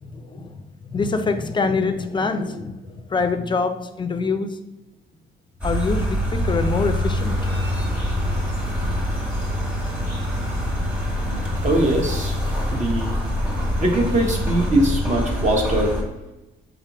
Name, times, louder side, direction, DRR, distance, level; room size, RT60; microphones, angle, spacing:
voice 1, 0.0-4.6 5.6-7.4, left 4 dB, 25° left, 8 dB, 0.4 m, -25 dB
sound 1, 5.6-16.0, equal, 5° right, 1.1 m, -25 dB
Southdowns estate ambiance, 7.1-14.7, right 1 dB, 80° right, 1.3 m, -35 dB
voice 2, 11.6-12.4 12.7-13.1 13.8-16.0, right 1 dB, 40° right, 0 dB, 0.8 m, -21 dB
3.8 x 3.3 x 2.9 m, 0.96 s
cardioid pair, 90°, 20 cm